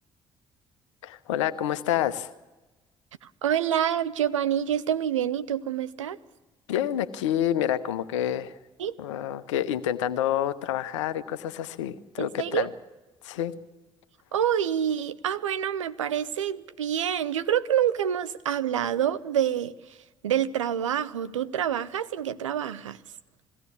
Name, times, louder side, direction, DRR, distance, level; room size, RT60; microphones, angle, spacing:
voice 1, 1.0-2.3 6.7-8.5 9.0-12.7 13.2-13.5, left 11 dB, 75° left, 0.9 m, -28 dB
voice 2, 3.4-6.2 8.8-8.9 12.2-12.7 14.3-19.7 20.2-23.0, right 10 dB, 80° right, 0.7 m, -27 dB
21.0 x 16.5 x 8.4 m
figure-of-eight pair, 50°, 16 cm